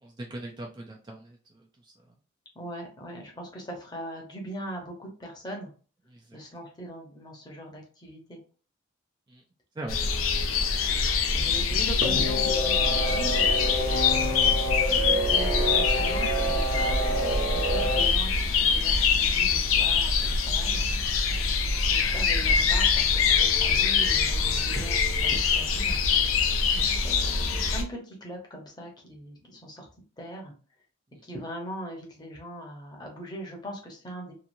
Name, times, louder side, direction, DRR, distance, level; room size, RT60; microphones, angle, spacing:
voice 1, 0.0-1.9 6.1-6.4 9.3-9.4 9.8-10.3 26.7-26.9, right 1 dB, 20° right, 0 dB, 0.3 m, -41 dB
voice 2, 2.5-5.7 6.3-8.4 11.3-20.9 21.8-26.0 27.0-29.9 30.2-30.5 31.2-34.3, equal, 20° left, 0 dB, 0.8 m, -40 dB
sound 1, 9.9-27.8, left 5 dB, 90° left, 0.5 m, -24 dB
sound 2, 12.0-18.0, right 1 dB, 45° right, 0.8 m, -29 dB
2.9 x 2.4 x 2.6 m, 0.38 s
head